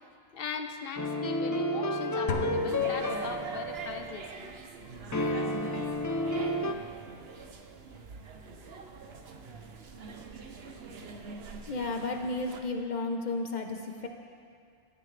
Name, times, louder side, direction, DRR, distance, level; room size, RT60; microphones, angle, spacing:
voice 1, 0.3-4.6, left 6 dB, 65° left, 7 dB, 1.0 m, -39 dB
sound 1, 1.0-4.3 5.1-6.7, left 1 dB, 25° left, 0.4 m, -31 dB
sound 2, 2.3-4.0, left 4 dB, 85° left, 1.1 m, -36 dB
sound 3, 2.6-12.6, right 4 dB, 75° right, 1.1 m, -44 dB
voice 2, 11.7-14.1, left 3 dB, 45° left, 4 dB, 1.2 m, -33 dB
18.0 x 13.0 x 3.4 m, 2.2 s
omnidirectional pair, 1.1 m